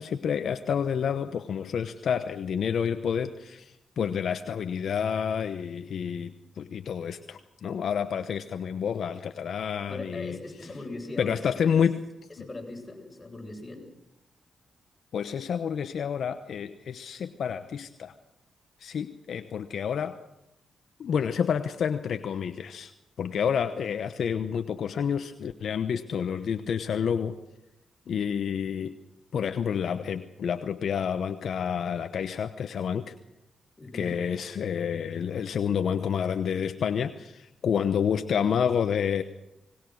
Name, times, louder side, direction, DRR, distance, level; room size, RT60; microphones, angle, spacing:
voice 1, 0.0-10.4 11.2-12.0 15.1-18.1 18.8-20.2 21.0-22.9 23.2-27.4 28.1-29.0 29.3-33.1 33.9-39.2, left 7 dB, 70° left, 9 dB, 1.0 m, -29 dB
voice 2, 9.9-11.7 12.4-13.9 33.8-34.2, left 2 dB, 25° left, 1 dB, 7.7 m, -39 dB
24.5 x 20.5 x 6.4 m, 0.86 s
cardioid pair, 60°, 0 cm